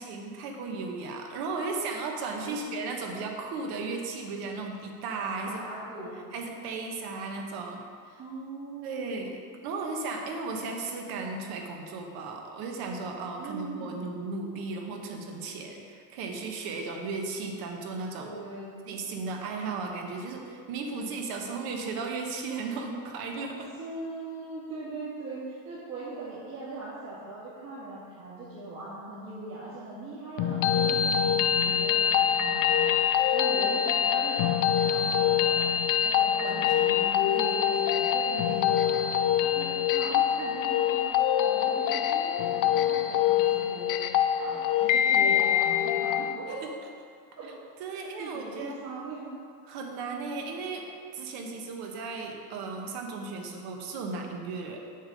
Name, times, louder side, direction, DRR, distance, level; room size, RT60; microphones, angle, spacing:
voice 1, 0.0-5.6 6.3-7.8 8.1-8.2 8.8-18.3 18.9-23.7 36.4-37.9 38.3-38.7 47.8-49.0 49.7-54.9, right 4 dB, 75° right, 2 dB, 1.3 m, -35 dB
voice 2, 5.5-6.2 8.2-9.2 13.3-14.0 18.2-18.7 23.8-35.7 36.0-39.1 39.4-41.1 41.4-44.0 44.4-46.6 47.4-47.5 47.8-49.3, right 2 dB, 60° right, -10 dB, 2.3 m, -40 dB
sound 1, 30.4-46.4, left 9 dB, 55° left, 0.5 m, -25 dB
7.2 x 6.8 x 5.1 m, 2.2 s
cardioid pair, 160°, 38 cm